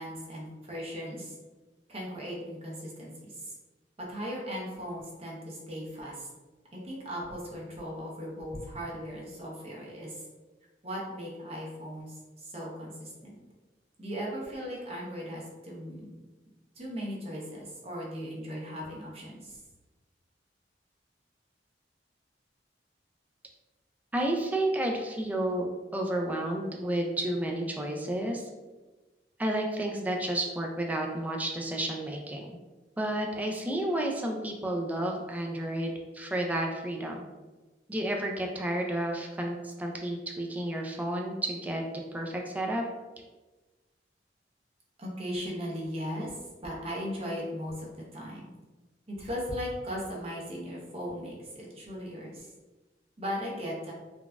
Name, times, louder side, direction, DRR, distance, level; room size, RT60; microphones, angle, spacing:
voice 1, 0.0-1.3 1.9-3.5 4.0-6.3 6.7-10.2 10.8-13.4 14.0-16.1 16.8-19.6 45.0-48.5 49.1-52.5 53.2-53.9, equal, 35° right, -3 dB, 0.7 m, -38 dB
voice 2, 24.1-28.5 29.4-32.6 33.0-37.2 37.9-41.8 42.1-42.8, right 1 dB, 10° right, 1 dB, 0.3 m, -31 dB
3.9 x 2.2 x 2.3 m, 1.2 s
head